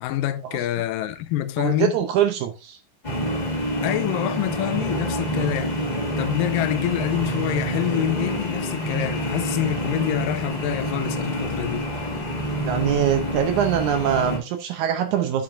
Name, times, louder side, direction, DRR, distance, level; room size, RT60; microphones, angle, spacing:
voice 1, 0.0-1.9 3.8-5.8 6.2-11.9, left 13 dB, 80° left, 2.2 m, -26 dB
voice 2, 1.6-2.8 12.7-15.4, right 9 dB, 75° right, 1.8 m, -23 dB
sound 1, 3.0-14.4, equal, 60° left, 0.4 m, -27 dB
8.8 x 7.6 x 2.5 m
omnidirectional pair, 4.0 m